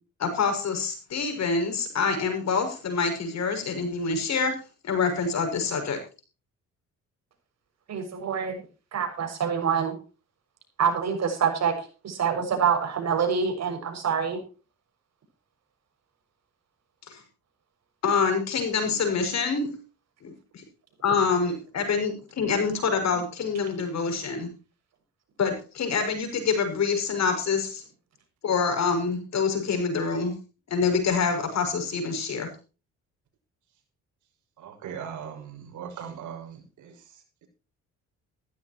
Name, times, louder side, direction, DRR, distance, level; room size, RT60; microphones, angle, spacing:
voice 1, 0.2-4.5 4.8-6.0 17.1-17.2 18.0-19.7 20.2-20.6 21.0-24.5 25.4-27.8 28.4-30.3 30.7-32.5, left 5 dB, 60° left, 6 dB, 6.6 m, -26 dB
voice 2, 7.9-8.6 8.9-10.0 10.8-11.7 12.0-14.4, right 7 dB, 60° right, 4 dB, 6.7 m, -26 dB
voice 3, 34.6-35.4 35.7-36.5, right 8 dB, 75° right, 4 dB, 6.1 m, -37 dB
16.0 x 14.5 x 3.0 m, 0.35 s
cardioid pair, 90°, 30 cm